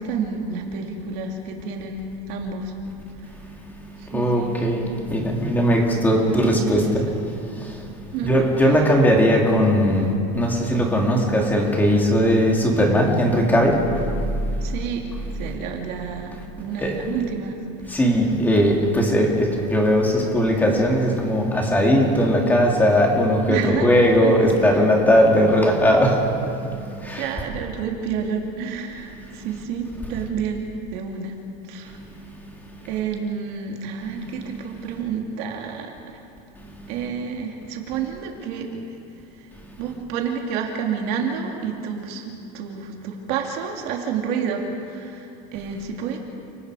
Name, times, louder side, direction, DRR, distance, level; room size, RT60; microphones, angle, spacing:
voice 1, 0.0-2.7 4.0-4.6 6.2-7.1 8.1-8.4 8.6-8.9 14.6-15.1 15.3-17.6 17.9-18.0 23.5-24.4 24.7-24.9 27.1-31.4 31.7-32.0 32.9-36.2 36.9-38.8 39.3-39.5 39.8-46.2, right 6 dB, 50° right, 2 dB, 2.7 m, -29 dB
voice 2, 4.0-7.0 7.5-7.9 8.2-14.7 16.8-17.0 17.9-27.3 29.3-29.4 31.9-32.1 34.2-34.5 36.6-36.9, equal, 10° left, 0 dB, 2.7 m, -19 dB
30.0 x 18.5 x 4.9 m, 2.6 s
supercardioid pair, 160°, 21 cm